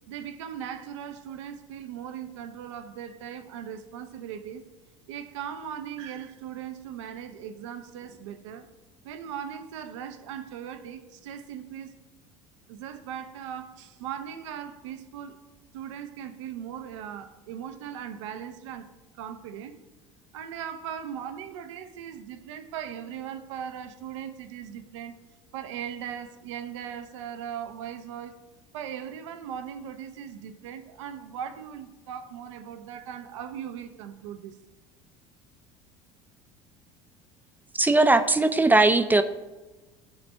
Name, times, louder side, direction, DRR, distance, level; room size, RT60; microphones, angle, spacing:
voice 1, 0.1-4.6 5.1-8.7 9.0-11.9 12.7-15.4 15.7-18.9 19.1-19.7 20.3-25.2 25.5-28.4 28.7-34.6, right 9 dB, 80° right, 9 dB, 0.6 m, -39 dB
voice 2, 37.8-39.2, right 2 dB, 10° right, 10 dB, 0.5 m, -19 dB
9.0 x 4.2 x 3.3 m, 1.2 s
hypercardioid pair, 80°, 15 cm